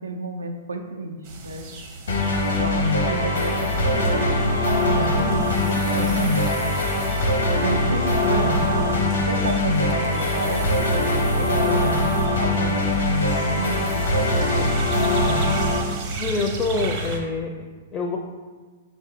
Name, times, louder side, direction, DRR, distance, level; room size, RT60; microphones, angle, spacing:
voice 1, 0.0-1.7 2.5-6.4 7.6-11.9 12.4-15.2, right 2 dB, 90° right, 5 dB, 0.5 m, -30 dB
sound 1, 1.2-17.2, right 2 dB, 45° right, 0.7 m, -36 dB
sound 2, 2.1-15.8, left 1 dB, 80° left, 0.8 m, -22 dB
voice 2, 16.2-18.2, left 3 dB, 25° left, 1 dB, 0.4 m, -26 dB
5.8 x 2.5 x 2.7 m, 1.4 s
hypercardioid pair, 115°, 0 cm